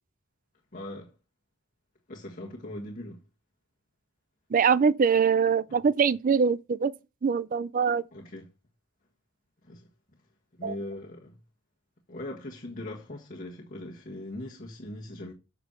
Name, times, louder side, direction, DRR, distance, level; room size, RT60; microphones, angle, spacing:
voice 1, 0.7-1.1 2.1-3.2 5.7-5.8 8.1-8.5 9.6-9.9 10.5-11.4 12.1-15.3, left 1 dB, 40° left, 1.5 m, -40 dB
voice 2, 4.5-6.9 7.2-8.0 10.6-10.8, right 6 dB, 40° right, 0.4 m, -23 dB
8.1 x 5.4 x 6.5 m
head